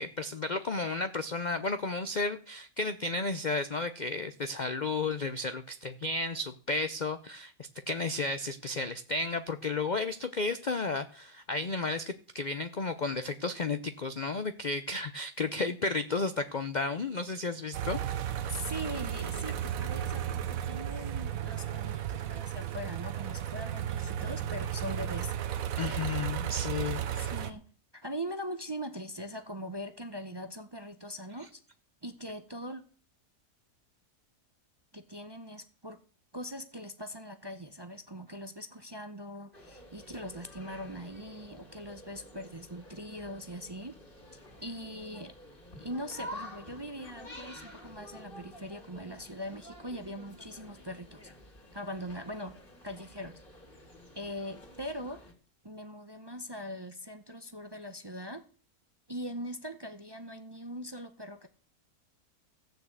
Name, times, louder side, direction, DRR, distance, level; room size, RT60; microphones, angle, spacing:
voice 1, 0.0-18.4 25.8-27.3, left 3 dB, 55° left, 10 dB, 0.5 m, -33 dB
sound 1, 17.7-27.5, right 10 dB, 65° right, 1.1 m, -34 dB
voice 2, 18.5-25.3 27.1-27.6 27.9-31.6 32.0-32.8 34.9-36.0 36.3-43.9 44.3-45.3 45.8-51.3 51.7-52.6 52.8-53.4 54.1-55.2 55.6-58.4 59.1-61.5, equal, 25° right, 8 dB, 0.6 m, -41 dB
sound 2, 39.5-55.3, equal, 30° left, 2.8 m, -50 dB
15.0 x 6.5 x 8.1 m, 0.43 s
omnidirectional pair, 1.7 m